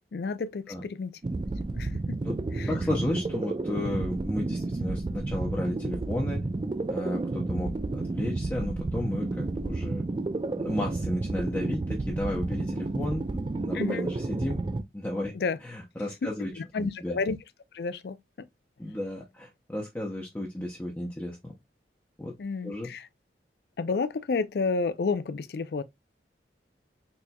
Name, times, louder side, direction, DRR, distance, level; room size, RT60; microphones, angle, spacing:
voice 1, 0.1-1.1 1.7-2.2 2.5-2.7 13.7-14.1 15.3-15.6 16.2-16.3 16.6-17.4 17.7-18.5 22.4-23.1 23.8-25.8, left 4 dB, 60° left, 0.4 m, -31 dB
sound 1, 1.2-14.8, right 2 dB, 25° right, 0.3 m, -31 dB
voice 2, 2.7-6.4 6.9-10.0 10.6-14.6 14.9-15.3 15.6-17.2 18.8-21.5 22.2-22.3 22.6-22.9, left 1 dB, 10° left, 0.6 m, -33 dB
4.1 x 3.4 x 2.2 m
head